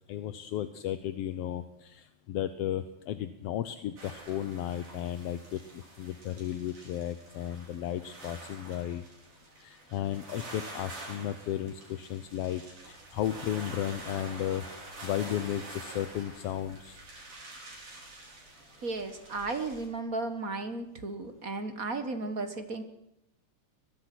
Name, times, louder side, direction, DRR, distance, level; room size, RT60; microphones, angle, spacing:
voice 1, 0.1-9.0 9.6-14.7 15.0-17.0, left 11 dB, 65° left, 12 dB, 1.6 m, -34 dB
sound 1, 4.0-19.9, right 2 dB, 90° right, 8.0 m, -47 dB
voice 2, 18.8-22.8, right 3 dB, 40° right, 9 dB, 1.3 m, -34 dB
22.0 x 22.0 x 6.1 m, 0.85 s
omnidirectional pair, 3.5 m